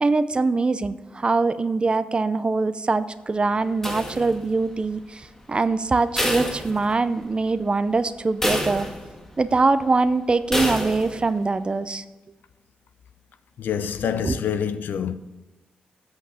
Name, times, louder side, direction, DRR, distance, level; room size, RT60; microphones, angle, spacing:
voice 1, 0.0-8.9 9.4-12.0 14.2-14.4, right 3 dB, 30° right, 0.6 m, -23 dB
sound 1, 3.8-4.7 6.2-7.3 7.7-7.8 8.4-9.3 10.5-11.3, equal, 15° left, 1.9 m, -27 dB
voice 2, 13.6-15.1, left 8 dB, 75° left, 0.6 m, -26 dB
8.2 x 6.5 x 7.6 m
cardioid pair, 65°, 3 cm